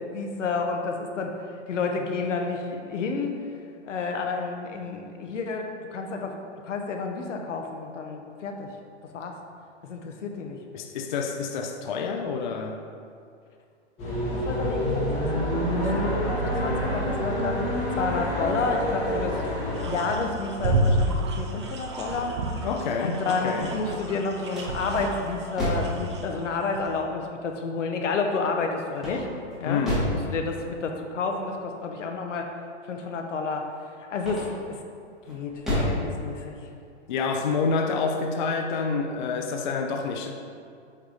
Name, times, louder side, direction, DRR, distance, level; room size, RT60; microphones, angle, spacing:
voice 1, 0.0-3.4 3.8-6.4 6.6-8.7 9.1-9.3 9.8-10.6 14.3-17.6 18.0-19.4 19.8-22.7 23.0-29.3 29.6-29.8 30.2-32.5 32.8-33.7 34.1-34.8 35.3-36.6, left 4 dB, 80° left, 3 dB, 1.0 m, -30 dB
voice 2, 10.7-12.8 22.6-23.7 29.7-30.0 37.1-40.3, left 4 dB, 40° left, 3 dB, 0.4 m, -28 dB
sound 1, 14.0-19.8, equal, 20° left, 1.1 m, -27 dB
sound 2, 19.7-27.0, right 1 dB, 25° right, 0.3 m, -30 dB
sound 3, 23.7-26.0 29.0-30.3 34.2-34.7 35.2-36.0, equal, ahead, 1.3 m, -30 dB
8.2 x 3.3 x 4.0 m, 2.4 s
hypercardioid pair, 155°, 36 cm